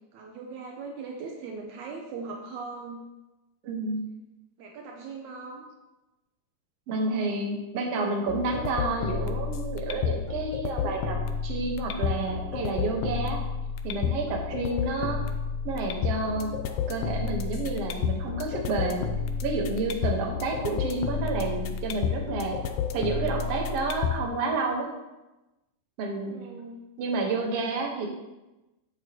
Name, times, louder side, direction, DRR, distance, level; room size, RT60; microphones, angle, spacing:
voice 1, 0.1-3.0 4.6-5.7 26.2-26.8, right 4 dB, 75° right, 0 dB, 2.2 m, -39 dB
voice 2, 3.6-4.1 6.9-13.4 13.8-15.2 15.7-16.5 16.9-19.1 19.4-22.6 22.9-24.9 26.0-26.4 27.0-28.1, right 3 dB, 60° right, 0 dB, 2.1 m, -30 dB
sound 1, 8.3-24.3, left 7 dB, 80° left, 1.4 m, -31 dB
11.0 x 8.1 x 3.0 m, 1.0 s
omnidirectional pair, 3.5 m